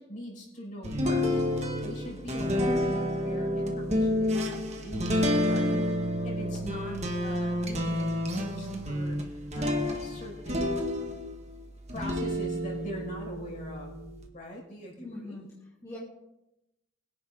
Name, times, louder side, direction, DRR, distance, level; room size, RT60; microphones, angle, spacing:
voice 1, 0.0-1.4 1.8-5.8 6.2-10.9 11.9-14.0 14.3-15.4, equal, 40° left, -2 dB, 5.8 m, -42 dB
sound 1, 0.8-11.4 11.9-14.2, left 1 dB, 35° right, 2.0 m, -29 dB
voice 2, 6.4-6.7 15.0-16.0, left 2 dB, 15° left, -8 dB, 3.5 m, -44 dB
23.0 x 10.5 x 4.0 m, 0.90 s
head